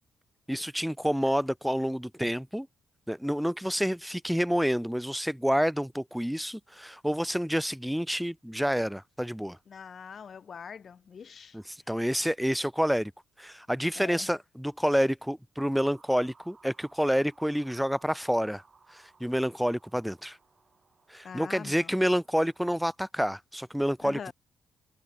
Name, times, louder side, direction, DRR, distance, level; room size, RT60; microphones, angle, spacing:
voice 1, 0.5-2.7 3.1-9.6 11.5-13.1 13.4-18.6 18.9-20.4 21.1-24.3, equal, ahead, 0.8 m, -28 dB
voice 2, 9.7-11.6 14.0-14.3 21.2-22.0 24.0-24.3, left 6 dB, 55° left, 0.6 m, -43 dB
sound 1, 15.7-22.6, right 4 dB, 40° right, 7.4 m, -61 dB
hypercardioid pair, 45°, 0 cm